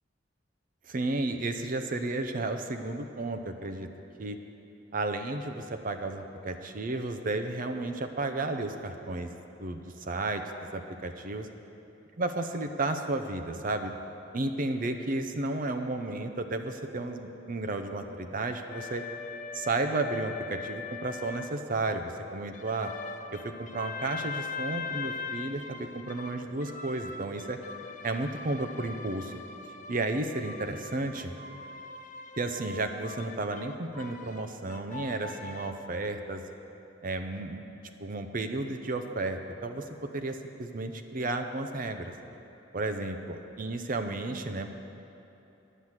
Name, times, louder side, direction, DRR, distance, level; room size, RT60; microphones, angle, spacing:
voice 1, 0.9-3.9 4.2-4.4 4.9-9.3 9.6-11.5 12.2-13.9 14.3-19.0 19.5-22.9 23.3-27.6 28.0-29.3 29.9-31.4 32.4-36.4 37.0-37.6 38.0-42.1 42.7-44.7, right 2 dB, 45° right, 7 dB, 0.6 m, -33 dB
sound 1, 18.7-21.5 22.5-35.7, left 5 dB, 40° left, 0.5 m, -41 dB
10.0 x 7.8 x 7.4 m, 2.9 s
head